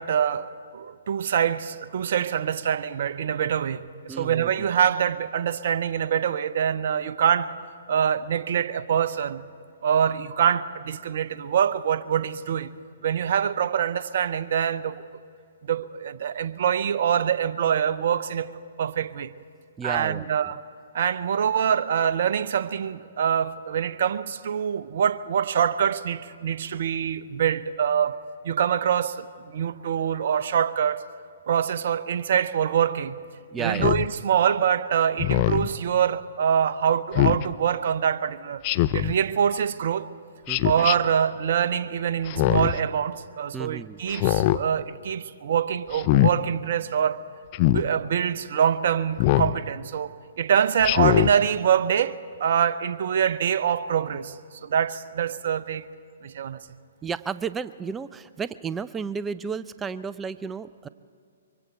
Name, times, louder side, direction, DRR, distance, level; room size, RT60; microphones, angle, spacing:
voice 1, 0.0-7.6 7.9-9.5 9.8-12.7 13.0-15.0 15.6-18.5 18.8-19.3 19.8-20.6 20.9-28.2 28.4-31.1 31.5-33.2 33.6-38.6 38.9-40.1 40.6-47.2 47.7-55.8 56.2-56.8, right 8 dB, 55° right, 0.7 m, -25 dB
voice 2, 4.1-4.7 19.8-20.5 33.5-34.1 40.5-40.9 43.5-44.0 57.0-60.9, right 6 dB, 15° right, 0.5 m, -33 dB
Speech synthesizer, 33.7-34.1 35.2-35.7 37.1-37.4 38.6-39.1 40.5-41.0 42.3-42.8 44.1-44.6 45.9-46.3 47.5-47.8 49.2-49.5 50.8-51.3, left 16 dB, 35° left, 0.5 m, -22 dB
24.5 x 23.5 x 4.5 m
figure-of-eight pair, 125°, 0 cm